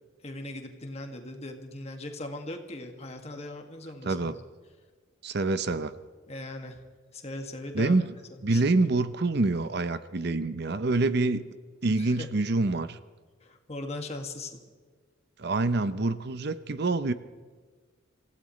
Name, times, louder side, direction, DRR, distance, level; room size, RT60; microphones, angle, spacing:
voice 1, 0.2-4.4 6.3-6.8 7.1-8.0 8.3-8.6 12.0-12.3 13.4-14.6, left 1 dB, 35° left, 4 dB, 2.0 m, -39 dB
voice 2, 4.0-4.4 5.2-5.9 7.7-8.1 8.4-11.4 11.8-13.0 15.4-17.1, right 2 dB, 55° right, 13 dB, 0.7 m, -26 dB
27.0 x 16.5 x 3.2 m, 1.5 s
head